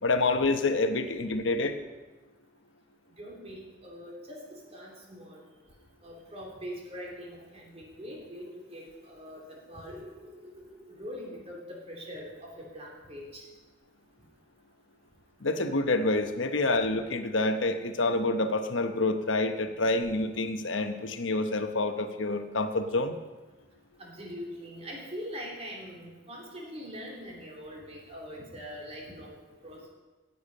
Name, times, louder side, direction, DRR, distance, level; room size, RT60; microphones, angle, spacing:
voice 1, 0.0-1.8 15.4-23.2, left 2 dB, 85° left, 8 dB, 1.0 m, -27 dB
voice 2, 3.2-5.4 6.0-13.4 24.0-29.9, equal, 35° right, -2 dB, 3.1 m, -43 dB
17.0 x 7.1 x 5.4 m, 1.2 s
head